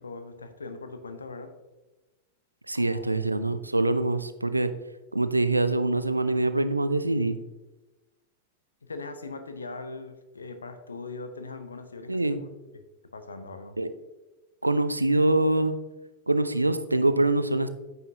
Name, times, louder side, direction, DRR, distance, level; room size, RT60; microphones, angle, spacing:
voice 1, 0.0-1.5 2.7-3.0 8.8-12.5 12.7-12.8 13.1-13.8, left 3 dB, 75° left, 8 dB, 0.7 m, -40 dB
voice 2, 2.7-4.7 5.1-7.4 12.1-12.4 13.8-13.9 14.6-15.8 16.3-17.7, right 2 dB, 85° right, 12 dB, 0.4 m, -24 dB
8.9 x 5.6 x 2.7 m, 1.1 s
figure-of-eight pair, 90°, 0 cm